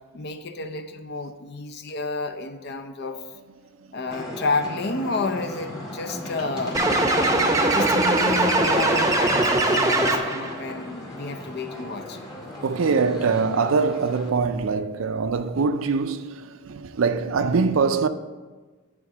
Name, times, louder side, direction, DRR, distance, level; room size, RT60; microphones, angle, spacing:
voice 1, 0.1-3.2 3.9-6.9 7.7-12.2, left 3 dB, 55° left, 0.6 m, -30 dB
voice 2, 3.6-4.0 12.6-18.1, right 5 dB, 80° right, 0.5 m, -23 dB
sound 1, 4.1-14.3, left 1 dB, 20° left, 1.8 m, -37 dB
sound 2, 6.7-10.5, right 2 dB, 15° right, 0.7 m, -21 dB
10.5 x 3.7 x 6.1 m
head